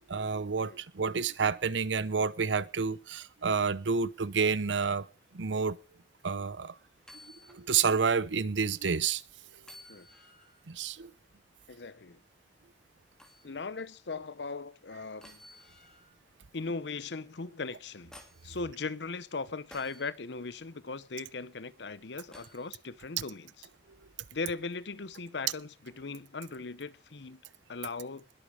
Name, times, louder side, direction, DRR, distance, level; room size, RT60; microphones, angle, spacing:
voice 1, 0.1-5.1 5.3-5.8 6.2-6.8 7.5-9.2 10.7-11.1, right 5 dB, 80° right, 0.7 m, -29 dB
sound 1, 7.0-7.7 8.1-8.2 9.6-10.6 13.2-13.5 15.2-16.2 17.6-18.5 19.7-20.1 22.3-22.7 24.5-24.6, left 1 dB, 5° left, 2.9 m, -54 dB
voice 2, 11.7-12.2 13.4-15.4 16.5-18.1 18.4-23.7 24.3-27.4 27.7-28.2, left 4 dB, 70° left, 0.8 m, -38 dB
20.5 x 8.5 x 5.0 m
head